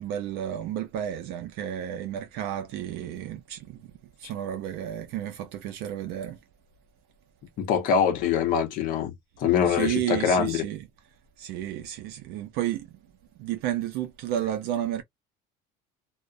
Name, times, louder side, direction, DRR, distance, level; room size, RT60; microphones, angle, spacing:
voice 1, 0.0-3.9 4.2-6.4 9.7-10.9 11.4-13.0 13.4-15.0, right 11 dB, 55° right, 0.4 m, -32 dB
voice 2, 7.6-10.6, left 7 dB, 45° left, 0.7 m, -24 dB
2.3 x 2.1 x 2.5 m
cardioid pair, 175°, 20 cm